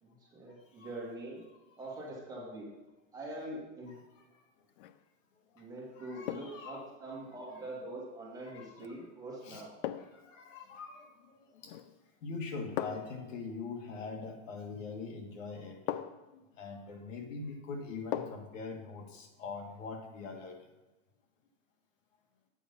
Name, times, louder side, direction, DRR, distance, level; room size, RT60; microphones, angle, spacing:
voice 1, 0.0-1.4 1.8-2.7 3.1-3.9 5.6-9.7, right 1 dB, 10° right, -5 dB, 2.1 m, -44 dB
voice 2, 3.9-4.4 5.5-5.7 6.0-7.2 8.4-9.1 9.4-9.7 10.0-11.1 11.5-11.7 12.2-15.9 16.3-20.6, left 4 dB, 70° left, 4 dB, 1.8 m, -43 dB
sound 1, 4.7-5.0 6.3-6.7 8.8-9.0 9.8-10.3 11.6-12.0 12.8-13.2 14.9-15.0 15.9-16.3 18.1-18.6 18.9-19.0, left 11 dB, 45° left, 0.4 m, -39 dB
8.4 x 5.7 x 5.6 m, 1.1 s
supercardioid pair, 160°, 40 cm